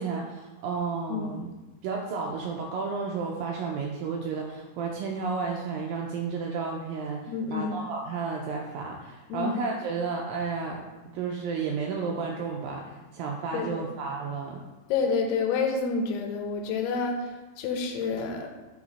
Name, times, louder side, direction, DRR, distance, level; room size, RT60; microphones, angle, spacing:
voice 1, 0.0-1.5 1.8-10.9 11.1-14.6, right 5 dB, 85° right, 0 dB, 2.0 m, -32 dB
voice 2, 7.3-7.8 9.3-9.5 13.5-13.9 14.9-18.5, left 4 dB, 85° left, 3 dB, 2.8 m, -29 dB
6.0 x 5.0 x 4.1 m, 1.2 s
omnidirectional pair, 4.6 m